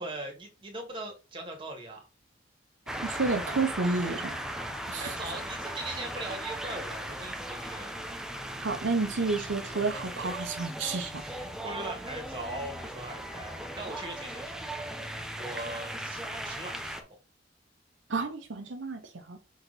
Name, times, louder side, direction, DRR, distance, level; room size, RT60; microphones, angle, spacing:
voice 1, 0.0-2.0 5.0-8.0 9.3-9.9 11.1-14.8 15.4-17.2, right 2 dB, 25° right, 2.0 m, -40 dB
sound 1, 2.9-17.0, right 1 dB, 5° right, 0.7 m, -38 dB
voice 2, 3.0-4.4 4.9-5.1 8.6-11.2 18.1-19.4, right 3 dB, 80° right, 0.9 m, -30 dB
6.4 x 4.0 x 4.1 m
head